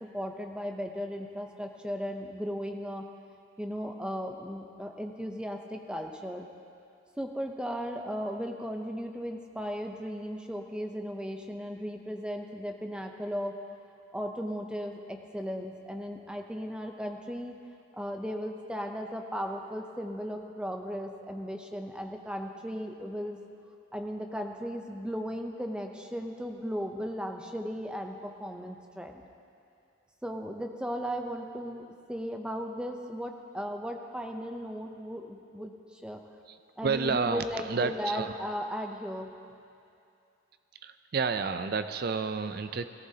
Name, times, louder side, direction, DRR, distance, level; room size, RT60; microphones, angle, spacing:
voice 1, 0.0-3.0 3.6-6.5 7.2-13.5 14.1-17.5 17.9-23.4 23.9-29.2 30.2-36.2 36.8-39.3, equal, 5° right, 3 dB, 0.6 m, -36 dB
voice 2, 36.8-38.4 40.8-42.9, right 4 dB, 50° right, 10 dB, 0.4 m, -30 dB
18.0 x 14.5 x 2.8 m, 2.6 s
head